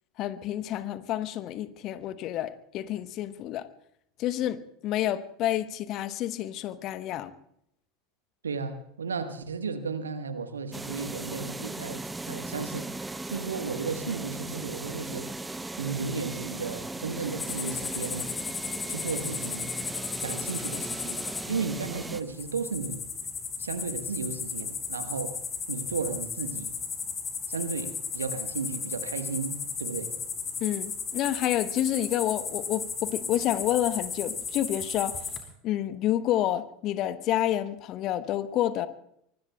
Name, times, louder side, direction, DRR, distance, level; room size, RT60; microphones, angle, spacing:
voice 1, 0.2-3.7 4.2-7.3 30.6-35.2 35.6-38.9, left 12 dB, 40° left, 1.0 m, -29 dB
voice 2, 8.4-12.9 13.3-15.3 15.8-18.3 18.9-19.7 20.2-23.0 23.6-25.4 25.7-26.7 27.5-30.1, right 5 dB, 75° right, 1.3 m, -34 dB
sound 1, 10.7-22.2, right 2 dB, 10° right, 0.8 m, -38 dB
sound 2, 17.4-35.4, left 6 dB, 25° left, 4.0 m, -35 dB
24.5 x 24.0 x 2.3 m
figure-of-eight pair, 80°, 0 cm